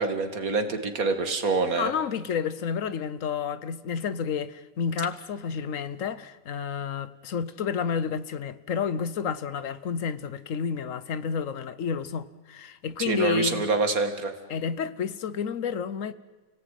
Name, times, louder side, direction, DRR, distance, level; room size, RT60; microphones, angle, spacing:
voice 1, 0.0-1.9 13.1-14.3, right 3 dB, 90° right, 2.5 m, -26 dB
voice 2, 1.8-13.7 14.5-16.1, left 6 dB, 70° left, 1.3 m, -30 dB
29.5 x 18.0 x 9.3 m
omnidirectional pair, 1.5 m